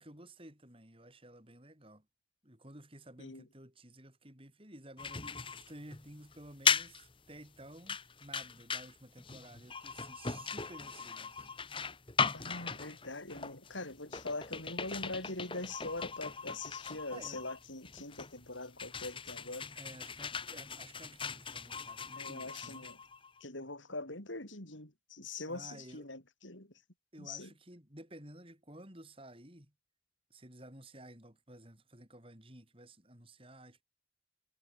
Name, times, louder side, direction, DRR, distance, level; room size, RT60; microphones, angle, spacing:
voice 1, 0.0-2.0 2.4-11.5 17.1-17.4 19.7-22.8 25.4-26.1 27.1-29.7 30.3-33.8, right 1 dB, 30° right, 6.6 m, -53 dB
sound 1, 5.0-23.4, left 6 dB, 25° left, 1.6 m, -38 dB
voice 2, 12.3-19.7 22.2-23.0 23.4-26.7 27.2-27.5, left 2 dB, 80° left, 7.2 m, -43 dB
head